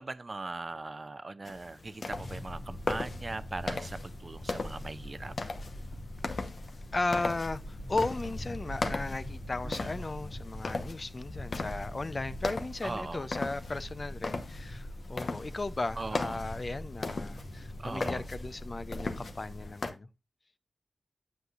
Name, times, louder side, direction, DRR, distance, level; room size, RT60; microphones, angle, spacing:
voice 1, 0.0-5.3 9.6-9.9 12.8-13.3 16.0-16.4 17.8-18.2, right 3 dB, 45° right, 0.6 m, -40 dB
sound 1, 1.4-19.9, left 3 dB, 70° left, 1.0 m, -39 dB
sound 2, 2.1-19.7, left 1 dB, 85° left, 1.7 m, -43 dB
voice 2, 6.9-20.1, left 2 dB, 45° left, 0.5 m, -36 dB
8.1 x 7.8 x 2.5 m
cardioid pair, 60°, 0 cm